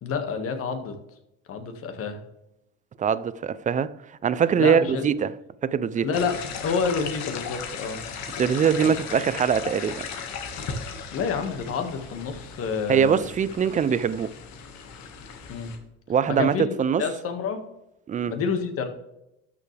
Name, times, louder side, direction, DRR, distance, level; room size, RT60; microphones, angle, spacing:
voice 1, 0.0-0.9 1.5-2.2 4.6-5.0 6.0-8.0 11.1-13.3 15.5-15.7 16.3-17.6 18.3-18.9, left 5 dB, 50° left, 1.9 m, -28 dB
voice 2, 3.0-4.0 4.2-5.3 5.6-6.1 8.4-10.1 12.9-14.3 16.1-17.0 18.1-18.3, right 7 dB, 25° right, 0.4 m, -22 dB
sound 1, 6.1-15.8, left 6 dB, 65° left, 1.8 m, -37 dB
12.5 x 7.1 x 3.4 m
cardioid pair, 115°, 30 cm